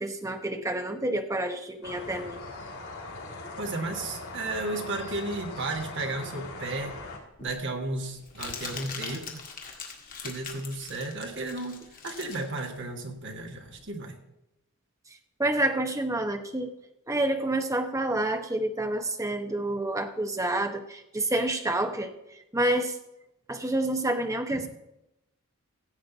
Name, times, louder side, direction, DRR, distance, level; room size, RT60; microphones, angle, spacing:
voice 1, 0.0-2.4 15.4-16.7 17.1-22.1 22.5-22.9 23.5-24.7, right 1 dB, 15° right, 6 dB, 0.8 m, -28 dB
sound 1, 1.8-7.2, left 2 dB, 85° left, 3.4 m, -40 dB
voice 2, 3.6-7.0 7.4-9.4 10.2-14.2 24.5-24.7, right 2 dB, 55° right, 3 dB, 1.6 m, -34 dB
Crumpling crinkling, 6.8-13.9, left 5 dB, 40° left, 1.9 m, -42 dB
16.0 x 7.8 x 4.0 m, 0.88 s
head